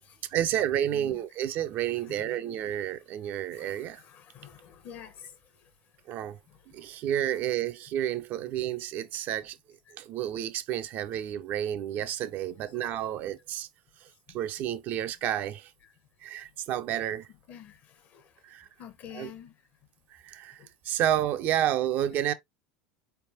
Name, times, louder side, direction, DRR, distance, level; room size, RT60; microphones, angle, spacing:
voice 1, 0.3-4.0 6.1-6.4 6.7-9.6 9.9-13.7 14.0-14.1 14.3-15.7 16.2-17.3 18.4-18.7 19.1-19.3 20.1-20.6 20.8-22.3, right 11 dB, 50° right, 0.6 m, -30 dB
voice 2, 2.1-2.4 3.2-5.7 6.5-6.7 9.9-10.0 12.7-12.9 14.3-14.4 17.5-18.4 18.8-19.5 20.6-20.7, left 9 dB, 45° left, 1.0 m, -49 dB
4.4 x 3.4 x 2.8 m
figure-of-eight pair, 80°, 4 cm